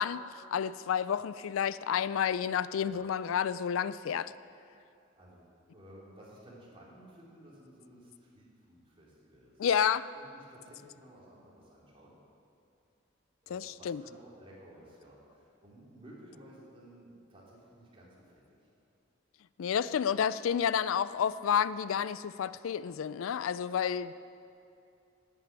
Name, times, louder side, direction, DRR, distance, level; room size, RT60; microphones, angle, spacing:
voice 1, 0.0-4.3 9.6-10.0 13.5-14.0 19.6-24.1, left 8 dB, 80° left, 16 dB, 0.4 m, -30 dB
voice 2, 5.7-12.2 13.4-18.4, right 1 dB, 25° right, -6 dB, 3.7 m, -55 dB
11.0 x 9.0 x 8.9 m, 2.7 s
head